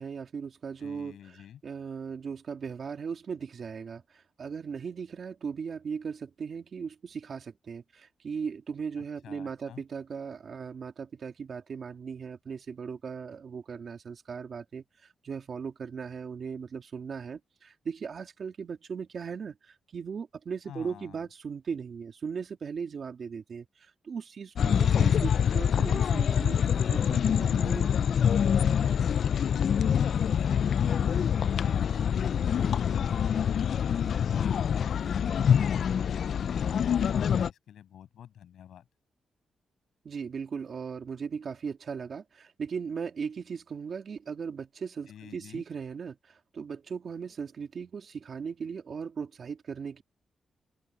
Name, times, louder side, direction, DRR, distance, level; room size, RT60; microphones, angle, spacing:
voice 1, 0.0-1.2 1.6-14.8 15.2-27.9 40.0-50.0, right 6 dB, 40° right, 2.9 m, -38 dB
voice 2, 0.8-1.6 9.0-9.8 20.7-21.2 27.6-28.5 29.9-35.9 36.6-38.9 45.1-45.6, left 10 dB, 85° left, 7.3 m, -50 dB
sound 1, 24.6-37.5, left 8 dB, 55° left, 0.3 m, -25 dB
open air
wide cardioid pair, 180°, 0 cm